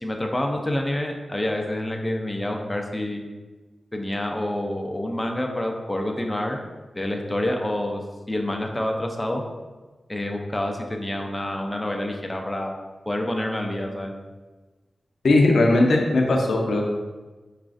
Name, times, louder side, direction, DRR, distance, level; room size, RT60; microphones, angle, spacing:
voice 1, 0.0-3.2 3.9-6.6 6.9-8.0 8.3-9.4 10.1-12.7 13.1-14.1, left 1 dB, 15° left, 2 dB, 0.4 m, -27 dB
voice 2, 15.2-16.8, left 2 dB, 80° left, 1 dB, 0.5 m, -18 dB
4.8 x 2.4 x 2.4 m, 1.3 s
wide cardioid pair, 75°, 0 cm